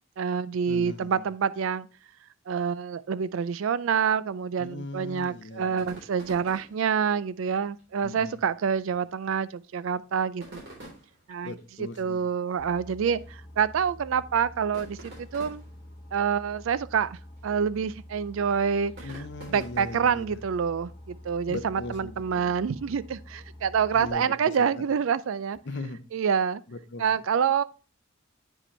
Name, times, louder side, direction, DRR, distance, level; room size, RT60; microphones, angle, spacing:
voice 1, 0.2-1.9 2.5-10.6 11.3-15.6 16.1-17.2 17.4-19.1 19.5-25.6 26.1-26.6 27.0-27.6, right 7 dB, 75° right, 0.4 m, -27 dB
voice 2, 0.7-1.3 4.6-6.0 8.0-8.4 11.4-12.2 19.0-20.4 21.5-22.6 23.9-24.8 25.6-26.1 26.7-27.2, left 2 dB, 55° left, 0.7 m, -39 dB
sound 1, 5.8-20.2, right 1 dB, 55° right, 3.8 m, -51 dB
Boat Water vehicle, 12.6-24.1, left 1 dB, 30° left, 1.9 m, -47 dB
8.6 x 5.0 x 3.2 m
head